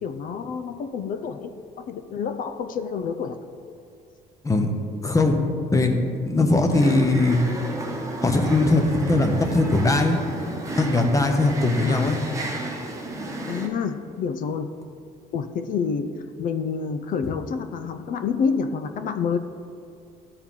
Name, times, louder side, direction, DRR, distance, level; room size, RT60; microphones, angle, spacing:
voice 1, 0.0-3.4 11.8-12.1 13.5-14.7 15.3-19.4, left 6 dB, 55° left, 9 dB, 0.5 m, -28 dB
voice 2, 4.4-4.8 5.0-5.3 5.7-6.0 6.2-7.4 8.2-10.2 10.8-12.2, left 2 dB, 20° left, 4 dB, 0.9 m, -20 dB
sound 1, 6.7-13.7, right 2 dB, 20° right, 1.1 m, -32 dB
12.5 x 4.5 x 3.7 m, 2.6 s
cardioid pair, 110°, 17 cm